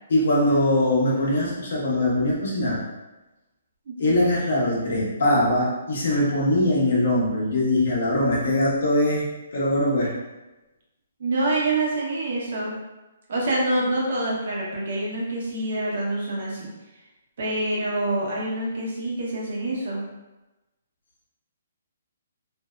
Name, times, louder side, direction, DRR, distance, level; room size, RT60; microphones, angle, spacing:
voice 1, 0.1-2.8 4.0-9.3 9.5-10.1, left 1 dB, 65° left, -4 dB, 0.7 m, -22 dB
voice 2, 3.9-4.2 11.2-12.8 13.3-16.7 17.4-20.0, right 2 dB, 60° right, -4 dB, 0.8 m, -26 dB
2.6 x 2.0 x 2.3 m, 1.1 s
hypercardioid pair, 160°, 0 cm